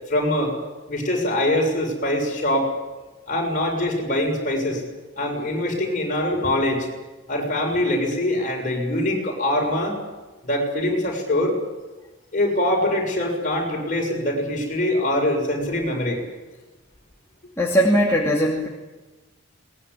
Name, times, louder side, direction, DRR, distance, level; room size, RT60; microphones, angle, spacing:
voice 1, 0.1-0.5 0.9-2.7 3.3-4.8 5.2-6.9 7.3-10.0 10.4-11.5 12.3-16.2, left 1 dB, 40° left, 0 dB, 6.6 m, -23 dB
voice 2, 17.6-18.7, equal, 15° left, -3 dB, 2.5 m, -19 dB
22.0 x 20.5 x 9.9 m, 1.2 s
head